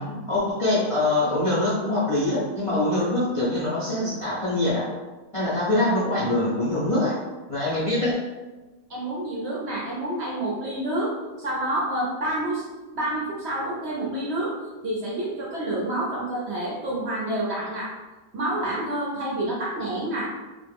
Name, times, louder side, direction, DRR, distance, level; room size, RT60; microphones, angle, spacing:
voice 1, 0.0-4.9 5.3-7.1 7.5-8.2, left 1 dB, 45° left, -10 dB, 0.4 m, -24 dB
voice 2, 8.9-12.7 12.9-14.5 14.8-17.9 18.3-20.3, right 1 dB, 60° right, -5 dB, 0.7 m, -28 dB
2.4 x 2.1 x 3.3 m, 1.2 s
omnidirectional pair, 1.6 m